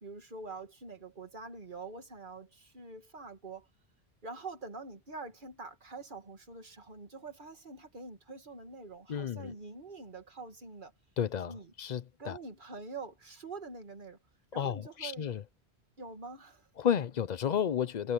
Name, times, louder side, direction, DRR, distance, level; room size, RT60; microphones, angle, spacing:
voice 1, 0.0-3.7 4.2-10.9 11.5-11.7 12.2-14.2 14.5-15.4 16.0-16.7, right 3 dB, 50° right, 2.3 m, -45 dB
voice 2, 9.1-9.5 11.2-12.4 14.6-15.4 16.8-18.1, left 8 dB, 50° left, 0.7 m, -32 dB
omnidirectional pair, 1.1 m